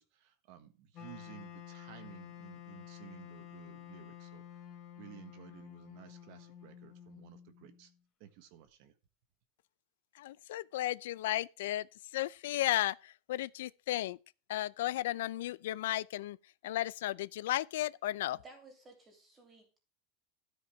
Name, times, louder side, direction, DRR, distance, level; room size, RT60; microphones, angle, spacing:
voice 1, 0.0-4.4 5.0-7.9 8.2-8.9, right 11 dB, 50° right, 1.4 m, -54 dB
Wind instrument woodwind instrument, 0.9-7.9, left 10 dB, 30° left, 2.0 m, -51 dB
voice 2, 10.2-11.9 12.1-14.2 14.5-16.4 16.6-18.4, left 14 dB, 80° left, 0.5 m, -34 dB
voice 3, 18.3-19.8, right 2 dB, 15° right, 3.0 m, -56 dB
13.0 x 5.3 x 5.9 m
supercardioid pair, 175°, 0 cm